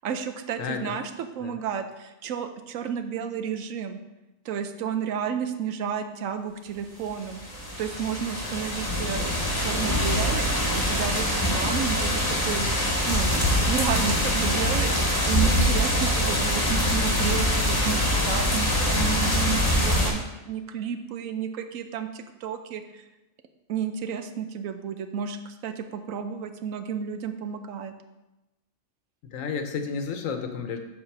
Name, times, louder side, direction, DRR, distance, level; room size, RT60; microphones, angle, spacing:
voice 1, 0.0-4.0 4.4-7.4 7.8-9.3 9.6-12.7 13.1-23.0 23.7-27.9, right 7 dB, 85° right, 8 dB, 1.1 m, -32 dB
voice 2, 0.6-1.0 1.4-1.6 29.3-30.8, left 6 dB, 80° left, 6 dB, 1.2 m, -31 dB
sound 1, 7.2-20.1, equal, 15° left, 1.4 m, -24 dB
7.4 x 4.0 x 5.9 m, 1.0 s
omnidirectional pair, 1.4 m